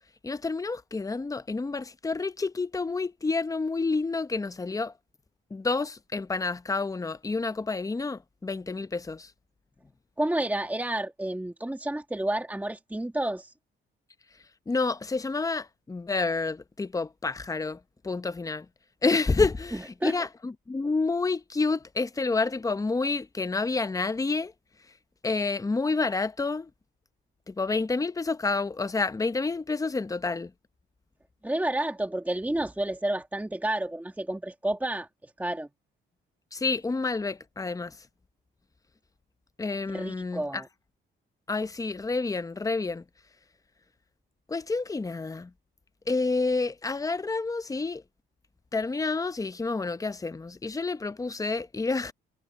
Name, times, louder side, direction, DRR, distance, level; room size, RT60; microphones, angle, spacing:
voice 1, 0.2-4.9 5.5-9.3 14.7-18.7 19.0-24.5 25.2-26.7 27.5-30.5 36.5-38.0 39.6-40.6 41.5-43.0 44.5-45.5 46.1-48.0 48.7-52.1, left 3 dB, 15° left, 0.8 m, -29 dB
voice 2, 10.2-13.5 19.7-20.3 31.4-35.1 35.4-35.7 39.9-40.7, right 1 dB, 10° right, 1.9 m, -30 dB
cardioid pair, 90°, 20 cm